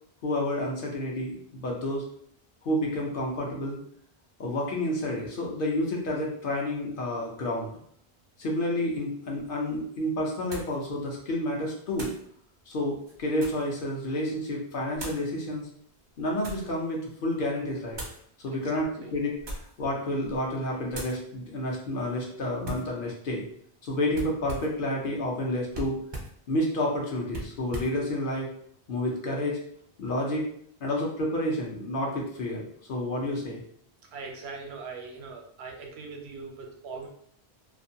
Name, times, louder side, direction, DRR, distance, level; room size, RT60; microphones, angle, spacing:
voice 1, 0.2-2.0 2.6-3.8 4.4-7.8 8.4-12.1 12.7-15.7 16.2-18.0 18.4-19.4 19.8-23.4 23.8-26.0 26.5-28.5 28.9-29.6 30.0-30.5 30.8-33.6, left 1 dB, 60° left, -2 dB, 0.8 m, -30 dB
sound 1, 9.4-9.5 10.5-10.8 11.9-12.3 13.0-13.7 14.9-15.3 16.0-16.7 17.9-18.2 19.3-19.8 20.2-20.5 20.9-21.2 22.6-22.9 24.1-24.8 25.7-26.4 27.3-28.0, right 2 dB, 40° right, 0.4 m, -39 dB
voice 2, 18.5-19.1 34.1-37.1, right 4 dB, 85° right, 1 dB, 0.8 m, -41 dB
2.5 x 2.1 x 2.6 m, 0.64 s
omnidirectional pair, 1.1 m